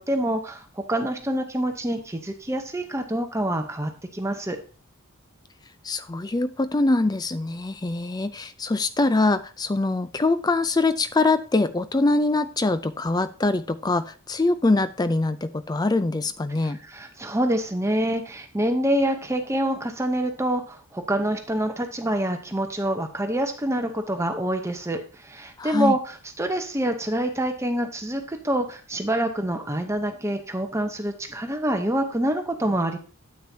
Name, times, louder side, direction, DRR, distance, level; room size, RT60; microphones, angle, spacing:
voice 1, 0.0-4.6 16.6-33.0, right 1 dB, 15° right, 6 dB, 0.8 m, -26 dB
voice 2, 5.8-16.8 25.6-25.9, left 2 dB, 20° left, 13 dB, 0.4 m, -23 dB
9.4 x 8.6 x 2.8 m, 0.37 s
head